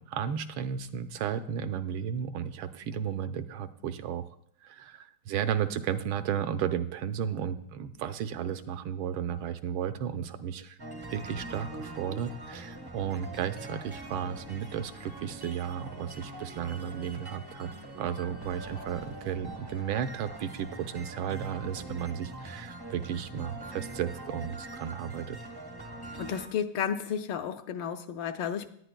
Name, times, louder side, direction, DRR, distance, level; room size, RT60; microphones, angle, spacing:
voice 1, 0.0-4.3 4.6-10.8 11.1-17.7 18.0-25.4, right 8 dB, 80° right, 1.4 m, -34 dB
sound 1, 10.8-26.5, right 1 dB, 30° right, 0.4 m, -43 dB
voice 2, 26.2-28.7, left 8 dB, 75° left, 1.2 m, -32 dB
18.0 x 10.0 x 2.2 m
omnidirectional pair, 2.3 m